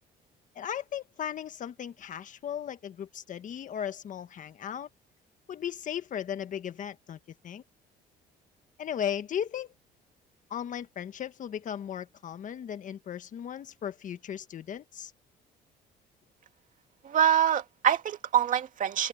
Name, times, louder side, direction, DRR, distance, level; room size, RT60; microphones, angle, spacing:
voice 1, 0.5-4.9 5.5-7.2 7.4-7.6 8.8-9.7 10.5-15.1, left 9 dB, 50° left, 1.5 m, -36 dB
voice 2, 17.0-19.1, right 9 dB, 50° right, 2.4 m, -25 dB
cardioid pair, 110°, 17 cm